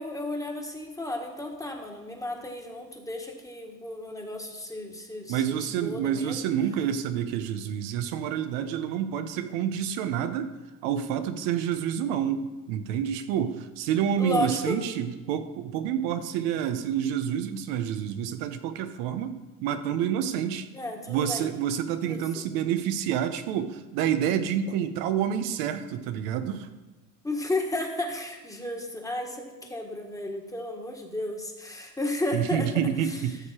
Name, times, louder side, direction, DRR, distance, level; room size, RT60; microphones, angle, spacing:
voice 1, 0.0-6.5 14.2-14.8 20.7-21.5 22.0-22.2 27.2-32.7 33.0-33.4, left 1 dB, 10° left, 2 dB, 1.6 m, -33 dB
voice 2, 5.3-10.5 10.8-20.7 21.1-26.7 32.3-33.4, right 9 dB, 90° right, 8 dB, 0.9 m, -28 dB
13.0 x 6.7 x 4.4 m, 1.1 s
cardioid pair, 105°, 37 cm